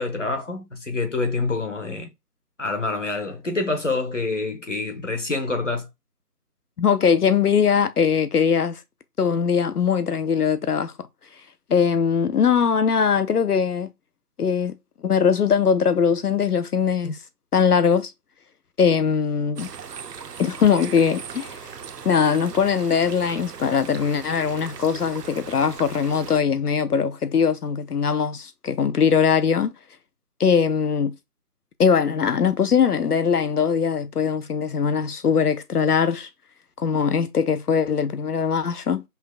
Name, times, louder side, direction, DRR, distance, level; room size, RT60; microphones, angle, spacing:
voice 1, 0.0-2.1 2.6-5.9, left 3 dB, 50° left, 1.0 m, -26 dB
voice 2, 6.8-8.8 9.2-10.9 11.7-13.9 14.4-14.8 15.0-17.2 17.5-18.1 18.8-19.7 20.4-21.7 22.0-29.7 30.4-31.1 31.8-36.3 36.8-39.0, left 6 dB, 70° left, 0.5 m, -21 dB
sound 1, 19.6-26.4, right 6 dB, 75° right, 0.6 m, -39 dB
5.5 x 2.2 x 2.3 m
figure-of-eight pair, 180°, 48 cm